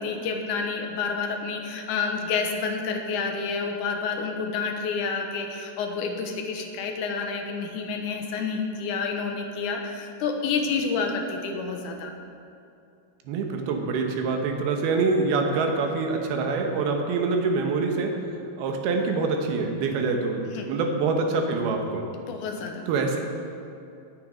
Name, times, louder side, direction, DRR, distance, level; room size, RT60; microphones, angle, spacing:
voice 1, 0.0-12.1 20.5-20.7 22.3-22.9, left 5 dB, 70° left, 3 dB, 2.0 m, -29 dB
voice 2, 13.3-18.2 18.6-22.1 22.9-23.2, right 4 dB, 75° right, 3 dB, 2.9 m, -25 dB
18.5 x 6.7 x 5.2 m, 2.6 s
omnidirectional pair, 4.7 m